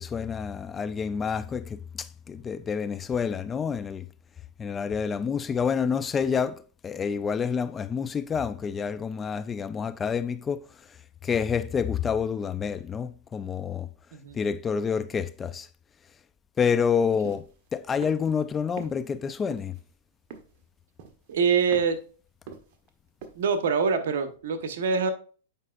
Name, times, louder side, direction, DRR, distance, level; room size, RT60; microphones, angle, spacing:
voice 1, 0.0-4.1 4.6-10.7 11.2-13.9 14.3-15.7 16.6-19.8, left 6 dB, 20° left, 0.3 m, -28 dB
sound 1, 17.2-17.5 18.0-18.3 18.8-18.9 19.5-19.8 20.3-20.6 21.0-21.3 21.7-22.0 22.5-22.9 23.2-23.4, right 6 dB, 50° right, 1.1 m, -42 dB
voice 2, 21.3-22.0 23.3-25.1, right 5 dB, 70° right, 1.1 m, -25 dB
8.3 x 5.2 x 2.5 m
hypercardioid pair, 125°, 0 cm